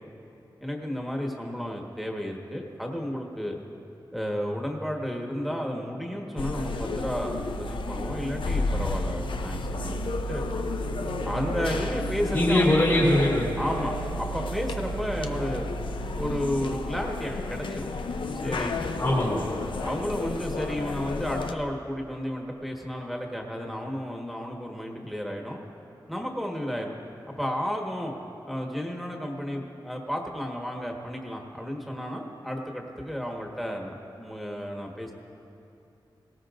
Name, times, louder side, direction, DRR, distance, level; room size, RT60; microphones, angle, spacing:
voice 1, 0.6-3.6 4.1-10.5 11.2-12.7 13.6-15.6 16.1-17.9 18.4-18.8 19.8-25.6 26.1-27.0 27.4-28.2 28.4-35.1, equal, ahead, 0 dB, 1.5 m, -32 dB
sound 1, 6.4-21.5, left 2 dB, 80° left, 0.7 m, -31 dB
voice 2, 12.3-13.6 19.0-19.5, left 1 dB, 40° left, -6 dB, 2.5 m, -22 dB
18.5 x 18.0 x 2.6 m, 2.8 s
wide cardioid pair, 100°, 8 cm